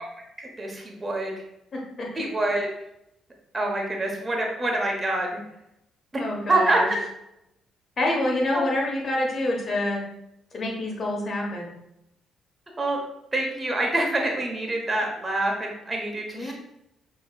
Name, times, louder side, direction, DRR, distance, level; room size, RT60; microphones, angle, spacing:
voice 1, 0.4-1.3 2.2-2.7 3.5-5.4 6.1-6.2 6.5-6.8 8.5-8.6 12.8-13.0 13.3-16.5, right 2 dB, 30° right, 1 dB, 1.3 m, -26 dB
voice 2, 1.7-2.2 6.2-6.9 8.0-10.0 10.5-11.7 16.3-16.5, left 1 dB, 50° left, -1 dB, 1.4 m, -27 dB
5.4 x 3.1 x 2.5 m, 0.84 s
hypercardioid pair, 50°, 0 cm